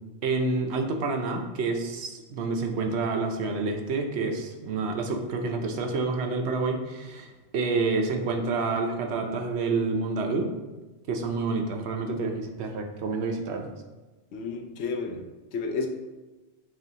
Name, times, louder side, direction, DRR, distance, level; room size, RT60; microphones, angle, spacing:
voice 1, 0.2-10.5 11.1-13.7, right 3 dB, 75° right, 3 dB, 0.9 m, -28 dB
voice 2, 14.3-15.2 15.5-15.9, left 4 dB, 75° left, 4 dB, 0.9 m, -31 dB
7.4 x 2.5 x 2.8 m, 1.2 s
omnidirectional pair, 1.1 m